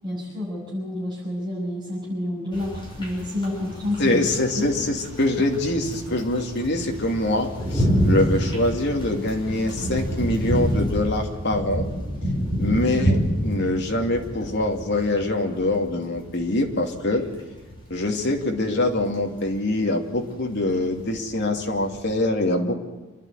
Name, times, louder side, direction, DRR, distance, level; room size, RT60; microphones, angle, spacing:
voice 1, 0.0-4.2 4.6-4.7, left 1 dB, 20° right, -10 dB, 7.7 m, -29 dB
sound 1, 2.5-22.2, equal, 20° left, 6.3 m, -28 dB
voice 2, 4.0-11.9 12.6-17.3 17.9-22.8, left 1 dB, 50° left, 2 dB, 2.7 m, -24 dB
28.0 x 11.5 x 9.5 m, 1.2 s
head